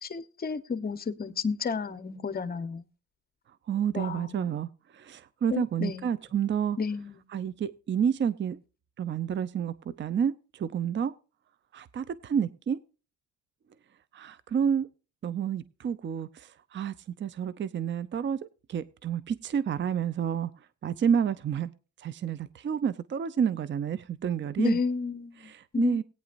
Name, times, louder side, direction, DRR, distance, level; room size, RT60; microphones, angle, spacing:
voice 1, 0.0-2.8 3.9-4.5 5.5-6.1 6.8-7.2 24.6-26.0, left 5 dB, 30° left, 1.0 m, -32 dB
voice 2, 3.7-6.8 7.3-8.6 9.0-11.1 11.7-12.8 14.1-14.9 15.2-16.9 17.2-18.4 18.7-20.5 20.8-21.7 22.0-24.8 25.4-26.0, right 8 dB, 40° right, 0.6 m, -29 dB
17.5 x 9.3 x 2.6 m
cardioid pair, 90°, 30 cm